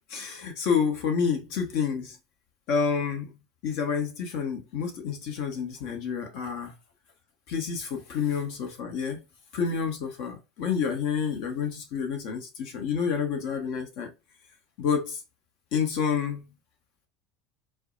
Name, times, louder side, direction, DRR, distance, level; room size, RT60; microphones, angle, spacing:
voice 1, 0.1-2.2 2.7-3.4 3.6-6.7 7.5-9.2 9.5-14.1 14.8-15.2 15.7-16.5, left 6 dB, 55° left, 1.0 m, -29 dB
4.4 x 2.1 x 2.5 m
figure-of-eight pair, 70°, 0 cm